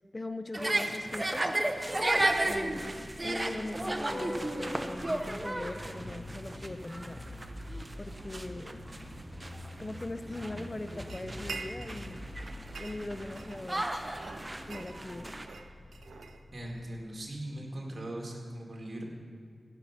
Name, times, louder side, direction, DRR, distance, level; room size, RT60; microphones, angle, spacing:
voice 1, 0.1-1.5 2.4-2.9 3.2-7.2 8.0-8.9 9.8-12.3 12.8-13.9 14.7-15.3, left 2 dB, 35° left, 10 dB, 0.7 m, -40 dB
sound 1, 0.5-15.5, right 1 dB, 30° right, 0.8 m, -34 dB
Vehicle horn car horn honking, 1.8-17.1, left 1 dB, 55° left, 3.2 m, -46 dB
sound 2, 11.1-12.2 12.5-13.8 14.1-16.8, right 4 dB, 90° right, 0.5 m, -45 dB
voice 2, 16.5-19.0, right 1 dB, 60° right, 0 dB, 2.1 m, -40 dB
16.5 x 5.9 x 6.0 m, 2.1 s
cardioid pair, 40°, 0 cm